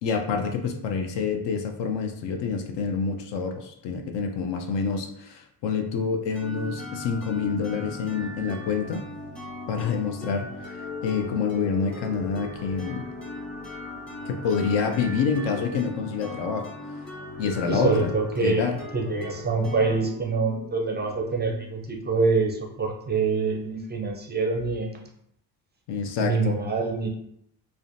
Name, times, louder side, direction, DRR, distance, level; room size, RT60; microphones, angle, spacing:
voice 1, 0.0-9.0 9.7-13.1 14.2-16.7 17.4-18.1 18.4-18.8 25.9-26.6, left 5 dB, 65° left, 6 dB, 0.5 m, -27 dB
sound 1, 6.3-22.0, left 2 dB, ahead, 0.9 m, -39 dB
voice 2, 17.6-18.7 18.9-25.0 26.2-27.1, right 4 dB, 25° right, 1 dB, 0.4 m, -25 dB
2.4 x 2.1 x 2.5 m, 0.72 s
supercardioid pair, 60°, 48 cm